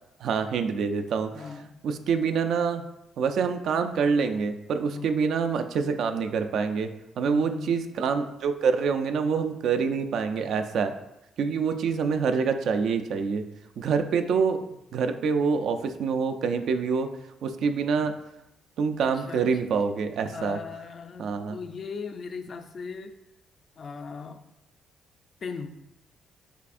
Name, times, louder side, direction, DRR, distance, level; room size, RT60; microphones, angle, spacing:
voice 1, 0.2-1.3 1.8-2.8 3.2-6.9 7.2-10.9 11.4-13.4 13.8-14.6 14.9-17.1 17.4-18.1 18.8-20.6 21.2-21.6, right 5 dB, 70° right, 8 dB, 0.3 m, -26 dB
voice 2, 1.3-1.8 4.9-5.2 7.3-7.9 19.0-19.5 20.3-23.2 23.8-24.5 25.4-25.7, left 5 dB, 50° left, 8 dB, 0.3 m, -38 dB
6.7 x 2.4 x 2.5 m, 0.87 s
cardioid pair, 90°, 0 cm